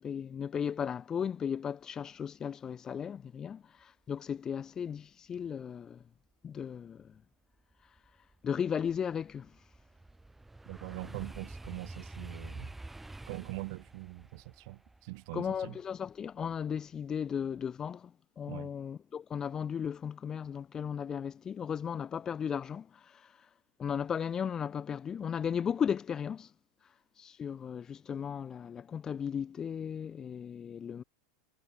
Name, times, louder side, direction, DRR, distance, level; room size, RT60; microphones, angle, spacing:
voice 1, 0.0-6.0 6.4-7.2 8.4-9.5 15.3-23.5 23.8-26.5 27.2-31.0, left 7 dB, 25° left, 0.3 m, -36 dB
sound 1, 7.1-7.2 7.7-16.8 17.2-17.6, right 2 dB, 10° right, 2.7 m, -48 dB
voice 2, 10.7-12.7 13.3-15.8 18.5-18.7, right 25 dB, 55° right, 0.7 m, -43 dB
figure-of-eight pair, 90°, 2 cm